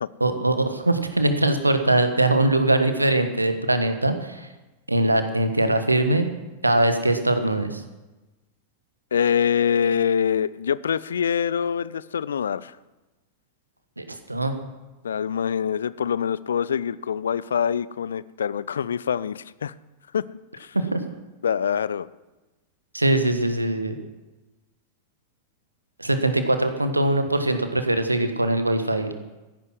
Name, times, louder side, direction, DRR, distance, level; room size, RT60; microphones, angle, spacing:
voice 1, 0.2-4.5 4.9-6.3 6.6-7.8 14.0-14.6 20.7-21.0 22.9-23.9 26.0-29.1, right 1 dB, 85° right, 8 dB, 1.4 m, -22 dB
voice 2, 9.1-12.8 15.0-19.7 20.1-20.2 20.5-20.7 21.4-22.1, left 8 dB, 65° left, 19 dB, 0.4 m, -25 dB
14.5 x 11.0 x 6.2 m, 1.1 s
figure-of-eight pair, 90°, 0 cm